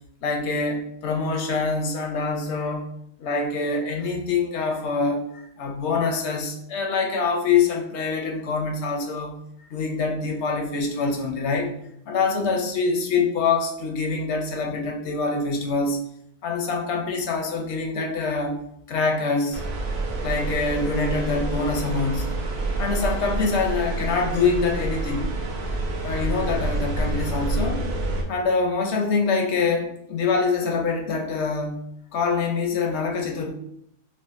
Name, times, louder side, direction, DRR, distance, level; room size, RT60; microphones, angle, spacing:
voice 1, 0.2-2.9 3.2-9.4 9.7-11.7 12.1-16.0 16.4-18.6 18.9-19.6 20.2-22.3 22.8-25.3 26.0-27.9 28.3-31.8 32.1-33.5, left 4 dB, 85° left, 2 dB, 0.9 m, -25 dB
sound 1, 19.5-28.2, right 2 dB, 70° right, 0.9 m, -28 dB
4.9 x 2.1 x 2.5 m, 0.73 s
omnidirectional pair, 1.1 m